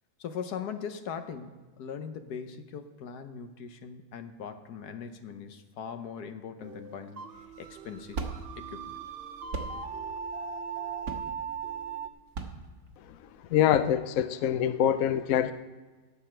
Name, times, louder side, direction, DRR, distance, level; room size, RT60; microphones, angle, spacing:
voice 1, 0.2-7.3 7.6-8.2 8.5-8.8, left 7 dB, 90° left, 8 dB, 1.5 m, -40 dB
sound 1, 6.6-12.1, right 6 dB, 50° right, 0.7 m, -39 dB
sound 2, 7.3-13.5, right 4 dB, 75° right, 1.7 m, -40 dB
voice 2, 13.5-15.5, left 10 dB, 70° left, 12 dB, 0.9 m, -24 dB
17.0 x 7.1 x 4.5 m, 1.3 s
omnidirectional pair, 1.6 m